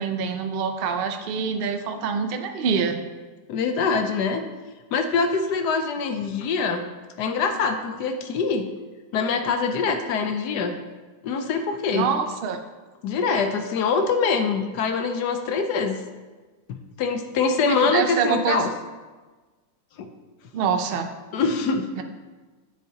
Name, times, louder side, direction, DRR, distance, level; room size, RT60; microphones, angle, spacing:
voice 1, 0.0-3.0 11.9-12.6 17.7-18.6 20.5-21.1 22.0-22.1, right 6 dB, 85° right, 6 dB, 0.5 m, -25 dB
voice 2, 3.5-4.4 4.9-6.8 7.2-8.7 9.1-10.8 11.2-12.1 13.0-16.0 16.7-18.7 20.0-20.1 21.3-21.9, left 4 dB, 80° left, 6 dB, 1.3 m, -24 dB
9.3 x 7.3 x 2.8 m, 1.3 s
omnidirectional pair, 1.8 m